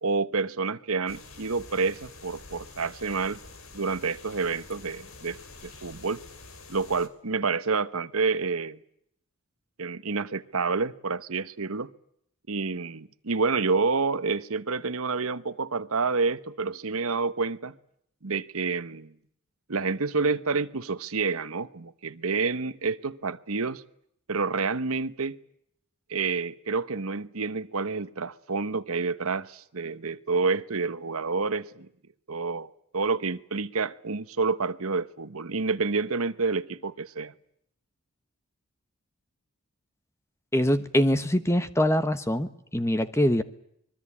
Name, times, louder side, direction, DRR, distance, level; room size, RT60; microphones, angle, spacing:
voice 1, 0.0-3.4 3.7-6.2 6.7-8.8 9.8-11.9 12.5-17.8 18.2-19.2 19.7-23.8 24.3-25.4 26.1-31.9 32.3-37.3, right 4 dB, 75° right, 1.0 m, -28 dB
sound 1, 1.1-7.1, left 3 dB, 70° left, 3.2 m, -47 dB
voice 2, 40.5-43.4, equal, 10° left, 1.1 m, -24 dB
25.0 x 22.0 x 8.6 m
head